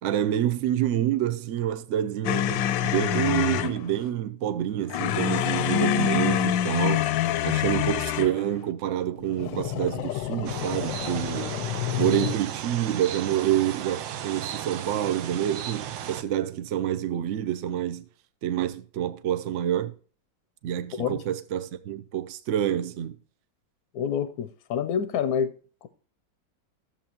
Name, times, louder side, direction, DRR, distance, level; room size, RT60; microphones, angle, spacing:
voice 1, 0.0-7.1 7.4-11.6 12.0-18.0 18.4-19.9 20.6-23.2, right 11 dB, 70° right, 0.7 m, -27 dB
sound 1, 2.2-3.8 4.9-8.4 9.3-12.3, left 11 dB, 85° left, 1.3 m, -26 dB
sound 2, 10.5-16.2, right 10 dB, 90° right, 1.4 m, -35 dB
voice 2, 20.9-21.2 23.9-25.5 25.8-25.9, left 7 dB, 70° left, 0.9 m, -27 dB
13.0 x 7.4 x 2.9 m
omnidirectional pair, 2.0 m